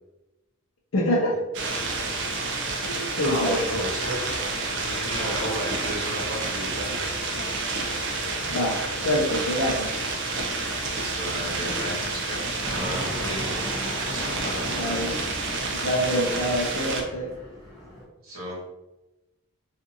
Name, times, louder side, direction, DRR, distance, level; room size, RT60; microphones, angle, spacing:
voice 1, 0.9-1.4 2.9-3.8 8.4-10.0 14.7-15.2 15.8-17.3, equal, 65° left, -2 dB, 0.5 m, -26 dB
sound 1, 1.5-17.0, right 3 dB, 55° right, 0.5 m, -29 dB
voice 2, 3.2-4.3 4.7-6.9 10.9-13.5 14.1-15.1 18.2-18.6, equal, 75° right, -5 dB, 1.0 m, -34 dB
Fixed-wing aircraft airplane, 12.6-18.0, equal, 15° right, 0.6 m, -37 dB
2.5 x 2.5 x 2.6 m, 0.99 s
head